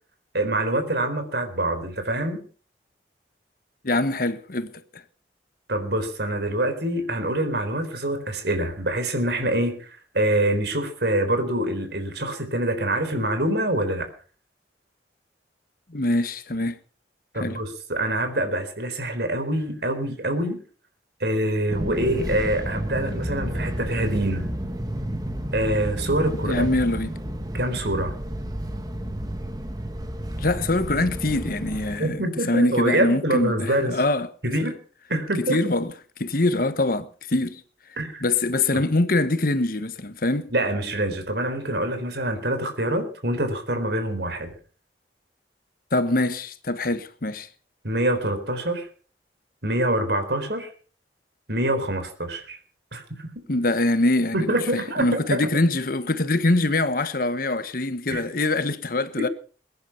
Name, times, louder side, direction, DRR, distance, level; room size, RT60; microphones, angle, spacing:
voice 1, 0.3-2.4 5.7-14.1 17.3-20.6 21.2-24.5 25.5-26.7 27.5-28.1 32.0-34.0 34.4-34.8 35.1-35.6 38.0-38.2 38.7-38.8 40.5-44.5 47.8-48.9 49.6-50.7 51.5-52.6 52.9-53.0 54.3-55.5 58.1-58.2, right 1 dB, 65° right, 4.0 m, -25 dB
voice 2, 3.8-5.0 15.9-16.8 17.4-17.6 26.4-27.2 30.4-34.3 35.3-35.9 36.2-37.6 38.2-40.5 45.9-47.5 53.5-59.3, left 2 dB, 50° left, 1.2 m, -24 dB
Fixed-wing aircraft airplane, 21.7-32.0, equal, 20° right, 2.0 m, -31 dB
22.0 x 10.5 x 5.8 m
head